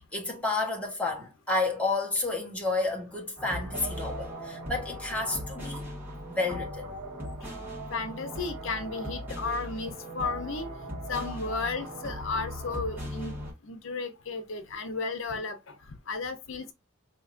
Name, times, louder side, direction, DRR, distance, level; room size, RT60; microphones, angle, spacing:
voice 1, 0.1-5.8 6.3-7.0, left 3 dB, 5° left, 1.0 m, -30 dB
sound 1, 3.4-13.5, equal, 10° right, 1.8 m, -38 dB
voice 2, 7.9-10.7 11.1-13.4 13.6-15.8 16.1-16.7, left 4 dB, 70° left, 0.7 m, -34 dB
4.6 x 2.8 x 2.4 m
head